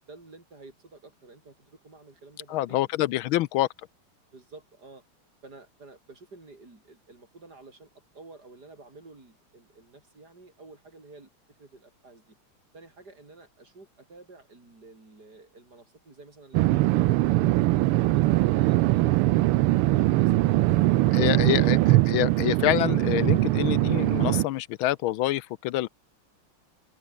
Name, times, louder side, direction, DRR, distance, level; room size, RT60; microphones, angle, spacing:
voice 1, 0.0-2.9 3.2-3.4 4.3-5.0 5.4-7.9 8.1-11.3 11.6-12.4 12.7-19.1 19.8-22.1, right 3 dB, 45° right, 5.8 m, -50 dB
voice 2, 2.5-3.7 21.1-21.8 22.1-25.9, left 15 dB, 75° left, 1.4 m, -26 dB
sound 1, 16.5-24.5, right 18 dB, 90° right, 1.5 m, -22 dB
omnidirectional pair, 2.4 m